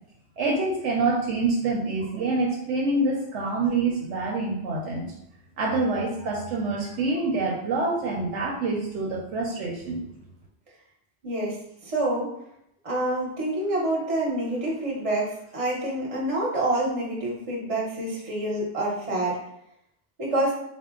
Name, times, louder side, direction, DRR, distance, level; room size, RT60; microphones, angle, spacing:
voice 1, 0.4-5.1 5.6-10.0, right 3 dB, 85° right, -2 dB, 1.0 m, -26 dB
voice 2, 11.2-11.6 11.8-12.3 12.8-19.4 20.2-20.5, right 1 dB, 30° right, -4 dB, 1.0 m, -27 dB
4.4 x 2.1 x 3.6 m, 0.77 s
omnidirectional pair, 1.2 m